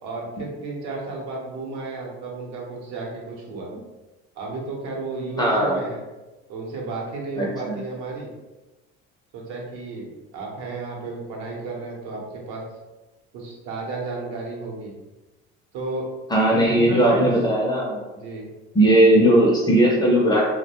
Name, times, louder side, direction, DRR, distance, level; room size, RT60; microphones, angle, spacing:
voice 1, 0.0-3.7 4.4-6.0 6.5-8.3 9.3-12.6 13.3-14.9 15.7-16.1 16.5-17.3 18.1-18.5, right 3 dB, 70° right, -1 dB, 0.8 m, -33 dB
voice 2, 5.4-5.8 7.4-7.8 16.3-18.0 18.7-20.4, right 1 dB, 15° left, -3 dB, 0.4 m, -18 dB
2.3 x 2.1 x 2.9 m, 1.1 s
cardioid pair, 145°, 29 cm